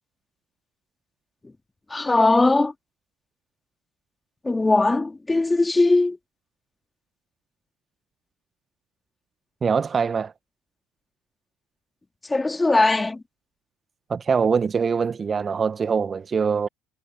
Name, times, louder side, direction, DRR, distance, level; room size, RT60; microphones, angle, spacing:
voice 1, 1.9-2.7 4.4-6.2 12.3-13.2, left 2 dB, 15° left, 2.8 m, -19 dB
voice 2, 9.6-10.3 14.1-16.7, right 6 dB, 35° right, 1.8 m, -23 dB
figure-of-eight pair, 55°, 0 cm